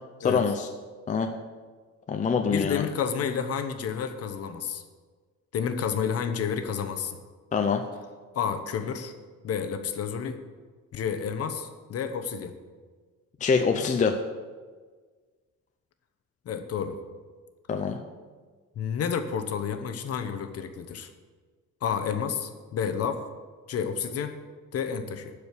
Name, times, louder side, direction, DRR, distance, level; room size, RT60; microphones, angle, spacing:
voice 1, 0.2-0.7 1.1-1.3 2.1-2.8 7.5-7.8 13.4-14.1 17.7-18.0, left 5 dB, 25° left, 5 dB, 0.6 m, -24 dB
voice 2, 2.5-4.8 5.5-7.2 8.3-9.1 9.4-10.4 10.9-12.5 13.7-13.9 16.5-17.0 18.8-21.1 21.8-23.3 23.7-24.4 24.7-25.3, left 7 dB, 50° left, 8 dB, 1.0 m, -30 dB
12.0 x 5.0 x 8.3 m, 1.5 s
cardioid pair, 160°, 31 cm